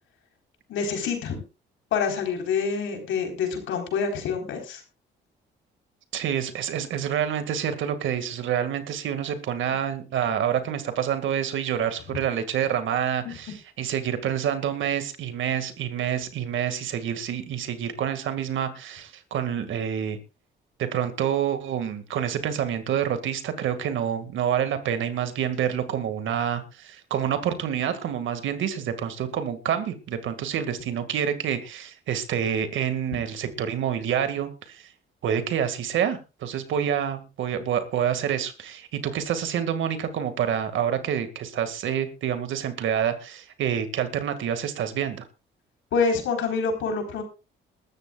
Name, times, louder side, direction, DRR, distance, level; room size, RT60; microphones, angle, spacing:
voice 1, 0.7-1.4 1.9-4.8 13.2-13.3 45.9-47.2, left 5 dB, 80° left, 4.2 m, -26 dB
voice 2, 6.1-20.2 20.8-34.9 35.2-45.2, right 9 dB, 75° right, 2.1 m, -27 dB
21.5 x 13.0 x 2.4 m
cardioid pair, 90°, 20 cm